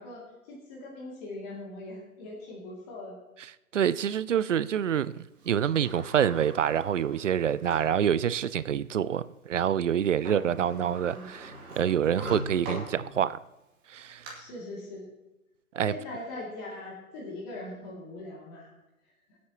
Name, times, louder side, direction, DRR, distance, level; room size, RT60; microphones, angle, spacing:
voice 1, 0.0-3.2 10.2-11.3 14.3-15.0 15.8-18.7, left 2 dB, 25° left, 2.6 m, -41 dB
voice 2, 3.7-13.4 13.9-14.2 15.7-15.9, right 9 dB, 60° right, 0.5 m, -27 dB
Sliding door, 5.4-8.0 8.6-8.7 10.0-10.1 10.2-13.4 13.9-14.3, right 1 dB, 20° right, 2.4 m, -41 dB
23.5 x 8.5 x 3.0 m
figure-of-eight pair, 130°, 43 cm